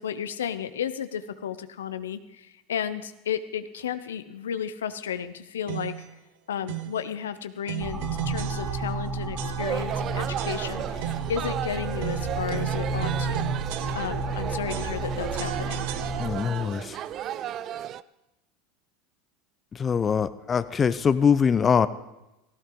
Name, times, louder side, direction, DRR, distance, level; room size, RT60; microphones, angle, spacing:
voice 1, 0.0-6.0 6.5-13.5 13.9-15.8, left 8 dB, 85° left, 12 dB, 0.7 m, -33 dB
sound 1, 5.7-6.1 6.7-7.0 7.7-9.0 9.4-10.0 10.4-11.4 12.0-14.4 14.7-16.6, right 14 dB, 65° right, 1.0 m, -36 dB
sound 2, 7.8-16.4, right 3 dB, 20° right, 2.1 m, -32 dB
sound 3, 9.6-18.0, right 11 dB, 45° right, 0.5 m, -34 dB
voice 2, 16.2-17.0 19.7-21.9, left 6 dB, 30° left, 14 dB, 0.8 m, -23 dB
17.5 x 15.5 x 3.9 m, 0.95 s
hypercardioid pair, 85°, 0 cm